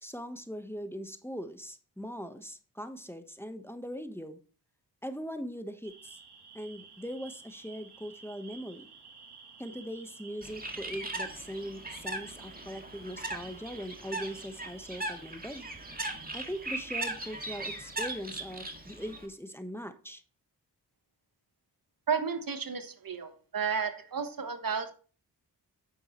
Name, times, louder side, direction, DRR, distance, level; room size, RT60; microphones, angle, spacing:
voice 1, 0.0-4.4 5.0-6.2 6.5-8.9 9.6-15.6 16.3-20.2, equal, 5° left, 8 dB, 1.2 m, -40 dB
sound 1, 5.8-17.4, right 5 dB, 80° right, 1.8 m, -52 dB
Bird, 10.4-19.3, right 2 dB, 20° right, 2.1 m, -39 dB
voice 2, 22.1-24.9, right 6 dB, 60° right, 9 dB, 1.3 m, -32 dB
9.0 x 7.4 x 3.1 m, 0.38 s
cardioid pair, 40°, 39 cm